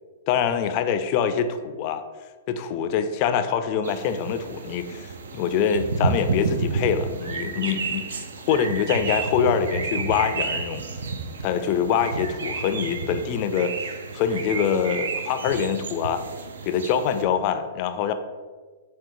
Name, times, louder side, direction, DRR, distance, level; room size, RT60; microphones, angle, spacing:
voice 1, 0.3-2.0 2.5-10.8 11.4-16.2 16.6-18.1, left 7 dB, 40° left, 9 dB, 0.3 m, -24 dB
sound 1, 3.8-17.2, right 4 dB, 80° right, 0.4 m, -31 dB
4.4 x 2.2 x 3.7 m, 1.4 s
hypercardioid pair, 135°, 0 cm